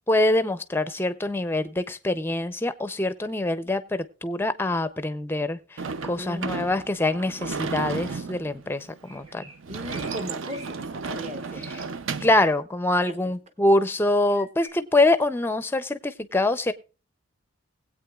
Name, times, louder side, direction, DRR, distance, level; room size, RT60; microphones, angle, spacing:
voice 1, 0.1-5.6 6.1-9.4 12.2-16.7, left 2 dB, 10° left, 0.5 m, -24 dB
Sliding door / Slam, 5.8-12.4, right 4 dB, 60° right, 0.5 m, -34 dB
voice 2, 6.2-6.6 9.7-11.8 13.1-13.2, equal, 30° right, 0.9 m, -38 dB
sound 1, 9.0-10.7 11.0-11.2 11.8-11.9 14.3-14.7, right 1 dB, 75° right, 4.2 m, -46 dB
20.5 x 8.4 x 2.3 m
head